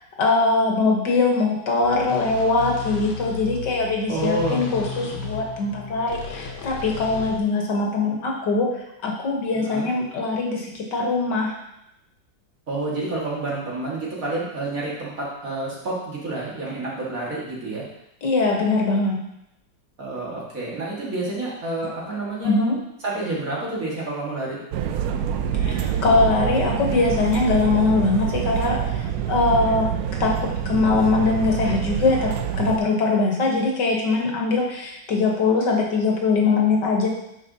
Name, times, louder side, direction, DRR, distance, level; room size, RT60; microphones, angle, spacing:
voice 1, 0.2-8.7 9.0-11.5 18.2-19.2 22.4-22.8 25.6-29.9 30.2-37.1, left 3 dB, 65° left, 0 dB, 1.7 m, -22 dB
sound 1, 1.8-7.4, left 4 dB, 85° left, 1.7 m, -34 dB
voice 2, 4.1-4.6 5.1-5.2 9.5-9.9 12.7-17.8 20.0-22.6 23.0-24.6, right 2 dB, 45° right, -5 dB, 2.2 m, -29 dB
sound 2, 24.7-32.8, right 8 dB, 75° right, 0.8 m, -26 dB
9.0 x 6.1 x 2.8 m, 0.83 s
omnidirectional pair, 2.1 m